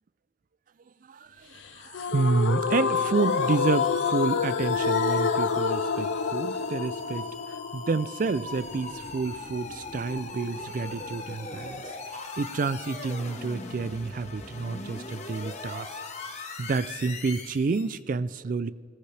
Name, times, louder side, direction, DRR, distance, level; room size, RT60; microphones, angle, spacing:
voice 1, 1.8-7.2 7.7-11.8 12.4-15.9 16.6-18.7, right 4 dB, 45° right, 17 dB, 0.4 m, -29 dB
sound 1, 1.9-9.0, left 5 dB, 85° left, 0.5 m, -28 dB
sound 2, 3.1-18.0, left 3 dB, 40° left, 1.2 m, -40 dB
17.5 x 14.5 x 3.3 m, 2.1 s
head